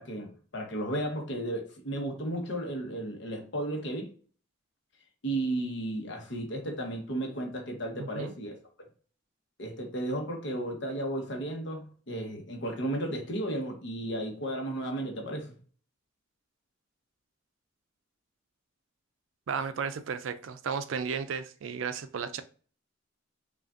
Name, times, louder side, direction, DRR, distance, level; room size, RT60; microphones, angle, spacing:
voice 1, 0.0-4.1 5.2-8.6 9.6-15.5, right 1 dB, 60° left, 1.0 m, -34 dB
voice 2, 8.0-8.3 19.5-22.4, right 6 dB, 75° right, 0.4 m, -34 dB
5.0 x 2.4 x 2.5 m
head